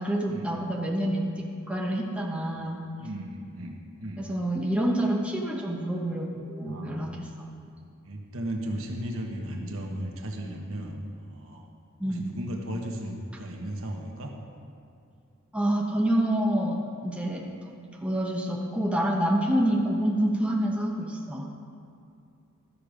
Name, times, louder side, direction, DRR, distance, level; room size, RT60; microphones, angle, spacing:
voice 1, 0.0-2.8 4.2-7.3 12.0-12.2 15.5-17.4 18.0-21.5, right 1 dB, 5° right, -2 dB, 0.9 m, -27 dB
voice 2, 3.0-4.2 6.6-7.3 8.0-11.7 12.0-14.3, right 1 dB, 65° right, 1 dB, 1.3 m, -36 dB
13.0 x 6.6 x 5.0 m, 2.5 s
head